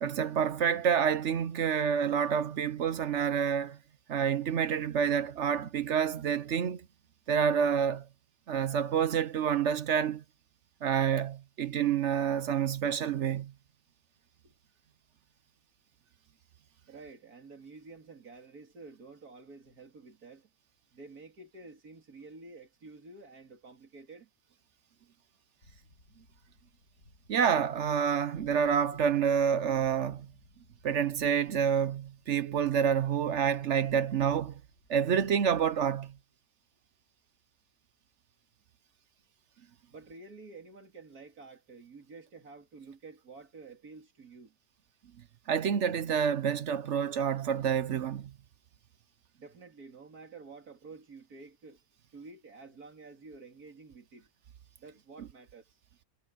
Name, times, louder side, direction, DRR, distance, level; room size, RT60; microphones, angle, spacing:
voice 1, 0.0-3.8 4.1-6.8 7.3-8.0 8.5-10.2 10.8-13.5 27.3-30.3 30.8-34.6 34.9-36.1 45.5-48.3, right 8 dB, 60° right, 1.0 m, -28 dB
voice 2, 16.9-20.5 20.9-24.3 28.9-29.0 39.9-44.6 49.4-51.8 52.1-54.3 54.8-55.8, right 3 dB, 80° right, 3.3 m, -50 dB
sound 1, 25.6-36.2, left 1 dB, 70° left, 8.5 m, -62 dB
omnidirectional pair, 1.6 m